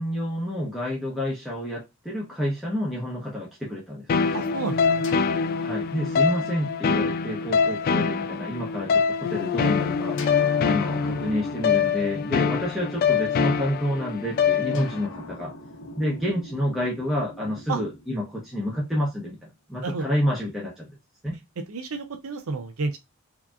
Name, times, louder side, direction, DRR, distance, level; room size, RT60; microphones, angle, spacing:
voice 1, 0.0-4.4 5.6-10.2 10.6-15.5 16.0-20.9 21.2-21.4, equal, ahead, 0.9 m, -29 dB
sound 1, 4.1-15.1, left 6 dB, 45° left, 0.3 m, -24 dB
voice 2, 4.3-5.1 17.7-17.8 19.8-20.1 21.7-23.0, right 3 dB, 70° right, 0.5 m, -30 dB
sound 2, 5.0-8.8 10.2-13.7 14.7-18.9, left 2 dB, 60° left, 0.8 m, -43 dB
4.7 x 2.8 x 2.3 m
head